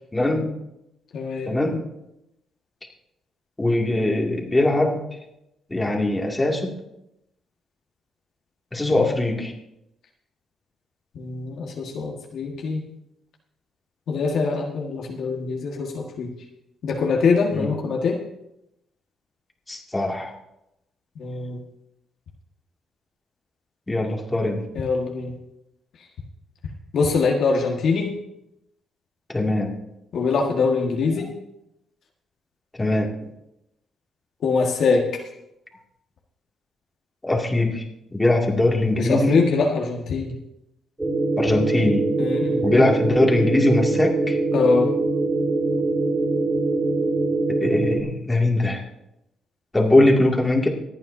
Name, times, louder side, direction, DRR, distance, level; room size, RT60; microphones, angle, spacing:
voice 1, 0.1-0.5 1.5-1.8 3.6-5.0 5.7-6.8 8.7-9.5 17.5-17.7 19.7-20.3 23.9-24.6 29.3-29.7 32.8-33.1 37.2-37.8 38.1-39.5 41.4-42.1 42.6-44.4 47.6-48.8 49.7-50.7, left 2 dB, 15° left, -1 dB, 2.3 m, -21 dB
voice 2, 1.1-1.5 8.9-9.0 11.1-12.8 14.1-16.3 16.8-18.2 21.2-21.6 24.7-25.3 26.9-28.1 30.1-31.3 34.4-35.2 38.9-40.4 42.2-42.6 44.5-44.9, left 4 dB, 65° left, 0 dB, 1.7 m, -23 dB
sound 1, 41.0-48.0, right 2 dB, 15° right, 2.4 m, -23 dB
25.5 x 9.0 x 2.7 m, 0.87 s
cardioid pair, 90°, 0 cm